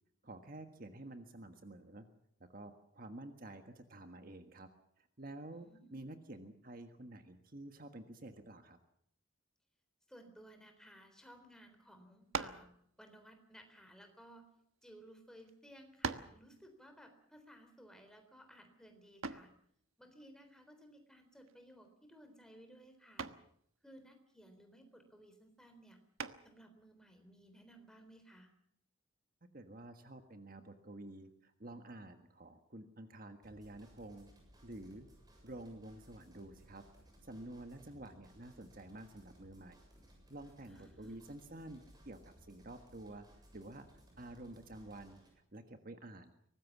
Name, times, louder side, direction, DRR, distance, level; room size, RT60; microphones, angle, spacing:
voice 1, 0.2-2.1 2.4-4.7 5.0-8.8 29.5-34.3 34.6-35.1 35.4-36.8 37.2-39.8 40.3-43.3 43.5-43.9 44.2-46.3, right 1 dB, 40° right, 7 dB, 1.5 m, -50 dB
voice 2, 5.5-5.9 10.1-12.7 13.0-14.5 14.8-19.5 20.0-23.3 23.8-26.0 26.4-28.5 40.7-41.2, equal, 5° left, 6 dB, 3.8 m, -58 dB
sound 1, 12.3-12.7 13.6-14.8 15.5-15.6 16.0-16.4 19.2-19.6 21.5-21.9 22.2-22.6 23.2-23.5 26.2-26.6, right 5 dB, 80° right, 1.3 m, -41 dB
sound 2, 33.4-45.3, equal, 20° right, 7.3 m, -62 dB
24.0 x 19.5 x 7.3 m, 0.69 s
head